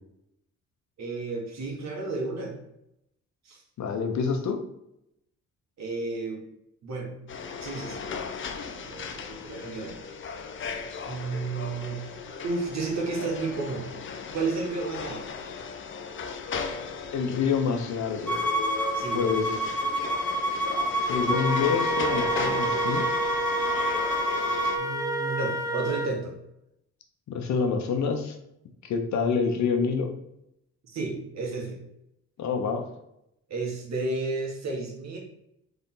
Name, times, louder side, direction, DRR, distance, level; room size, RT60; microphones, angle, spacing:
voice 1, 1.0-2.5 3.4-3.6 5.8-6.4 6.8-7.1 7.6-8.0 8.8-10.0 11.0-12.1 12.4-13.9 14.3-15.3 18.9-19.6 24.8-26.3 30.8-31.8 33.5-35.2, right 3 dB, 60° right, 0 dB, 1.5 m, -32 dB
voice 2, 3.8-4.6 17.1-18.4 19.1-19.5 21.0-23.1 27.3-28.3 28.8-30.1 32.4-32.9, left 5 dB, 65° left, 4 dB, 0.9 m, -27 dB
sound 1, 7.3-24.8, left 5 dB, 40° left, 0.6 m, -36 dB
Bowed string instrument, 18.3-24.8, equal, 5° left, 0.9 m, -29 dB
Wind instrument woodwind instrument, 21.3-26.1, right 1 dB, 10° right, 0.5 m, -29 dB
4.0 x 3.5 x 3.7 m, 0.81 s
cardioid pair, 90°, 30 cm